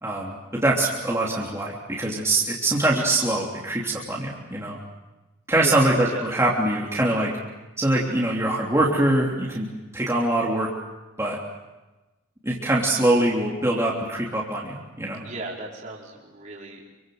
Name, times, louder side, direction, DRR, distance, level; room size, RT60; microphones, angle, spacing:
voice 1, 0.0-4.8 5.5-7.3 7.8-9.7 9.9-10.7 11.2-11.4 12.4-15.2, right 1 dB, 15° right, -4 dB, 3.3 m, -23 dB
voice 2, 5.5-6.2 15.2-16.8, right 2 dB, 35° right, -4 dB, 4.9 m, -35 dB
27.5 x 25.0 x 7.9 m, 1.1 s
head